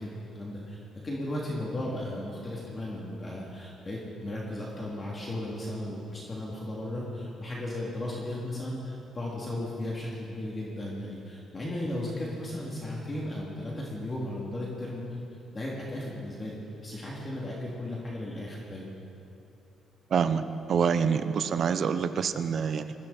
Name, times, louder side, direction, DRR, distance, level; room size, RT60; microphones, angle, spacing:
voice 1, 0.0-15.0 15.5-16.6 16.8-19.0, left 1 dB, 30° left, -4 dB, 3.0 m, -35 dB
voice 2, 20.1-22.9, right 6 dB, 55° right, 11 dB, 0.8 m, -26 dB
21.0 x 15.5 x 4.4 m, 2.9 s
cardioid pair, 90°, 0 cm